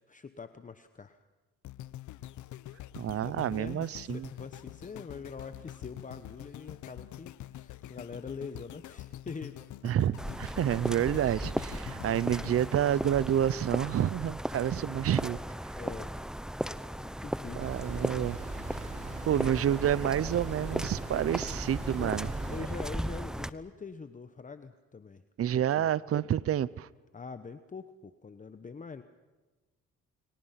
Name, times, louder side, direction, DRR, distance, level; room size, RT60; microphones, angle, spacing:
voice 1, 0.1-1.2 3.2-9.7 14.8-15.0 15.7-16.2 16.9-17.7 21.1-21.2 22.0-22.1 22.5-25.2 25.5-25.9 27.1-29.0, left 5 dB, 25° left, 10 dB, 1.0 m, -44 dB
sound 1, 1.6-13.8 14.4-14.5, left 13 dB, 75° left, 0.8 m, -45 dB
voice 2, 2.9-4.3 9.8-15.4 17.6-18.4 19.2-22.3 22.6-22.7 25.4-26.9, right 10 dB, 50° right, 20 dB, 0.7 m, -29 dB
sound 2, 10.2-23.5, equal, ahead, 0.8 m, -37 dB
sound 3, 17.6-22.6, right 2 dB, 25° right, 3.5 m, -40 dB
30.0 x 24.0 x 5.9 m, 1.2 s
cardioid pair, 90°, 30 cm